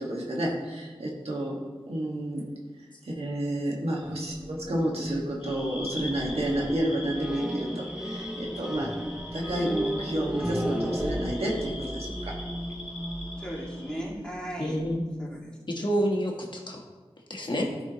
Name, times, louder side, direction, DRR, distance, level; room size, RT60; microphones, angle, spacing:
voice 1, 0.0-1.6 1.9-2.5 3.0-8.9 9.3-12.3, right 1 dB, 80° right, -3 dB, 1.7 m, -30 dB
sound 1, 4.0-15.0, equal, 5° right, 0.6 m, -35 dB
sound 2, 5.4-14.0, left 2 dB, 70° left, 1.8 m, -42 dB
voice 2, 13.4-14.9 15.2-15.5 15.8-15.9 17.5-17.8, equal, 10° left, -4 dB, 2.4 m, -37 dB
voice 3, 14.6-15.3 15.7-16.8 17.3-17.7, equal, 50° left, 0 dB, 1.4 m, -29 dB
13.5 x 5.0 x 3.1 m, 1.3 s
wide cardioid pair, 60°, 10 cm